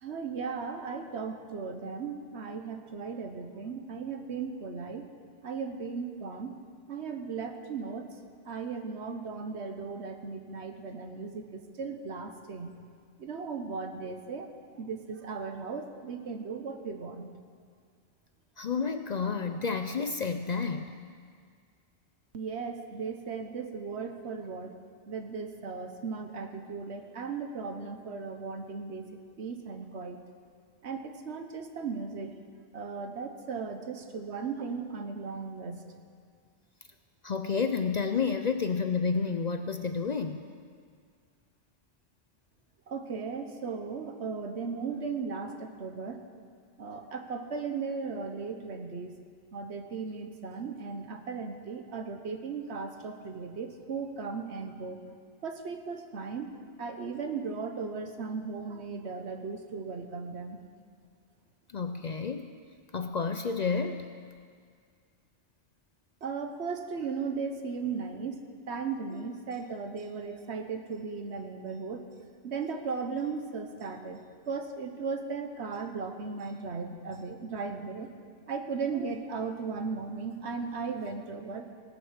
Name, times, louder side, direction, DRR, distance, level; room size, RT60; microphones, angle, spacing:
voice 1, 0.0-5.1 5.4-6.6 6.9-8.1 8.4-12.7 13.2-14.5 14.8-17.3 22.3-24.7 25.1-30.2 30.8-32.4 32.7-35.8 42.9-46.2 46.8-49.2 49.5-55.0 55.4-60.6 66.2-68.4 68.7-72.1 72.4-78.1 78.5-81.7, right 5 dB, 75° right, 6 dB, 1.3 m, -37 dB
voice 2, 18.6-20.9 37.2-40.4 61.7-62.5 62.9-64.1, left 5 dB, 50° left, 8 dB, 0.6 m, -30 dB
17.0 x 9.2 x 6.4 m, 2.1 s
omnidirectional pair, 1.1 m